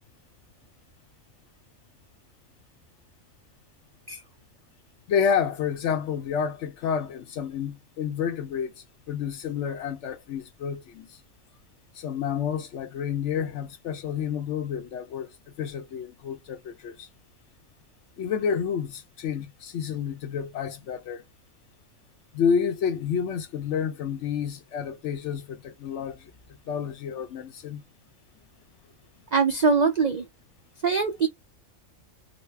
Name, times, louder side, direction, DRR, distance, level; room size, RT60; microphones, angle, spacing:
voice 1, 5.1-8.7 9.1-11.2 11.9-15.3 15.6-17.1 18.2-21.3 22.3-27.8, left 7 dB, 65° left, 0.9 m, -29 dB
voice 2, 29.3-30.3 30.8-31.3, right 5 dB, 70° right, 0.4 m, -22 dB
4.0 x 2.0 x 3.2 m
omnidirectional pair, 1.4 m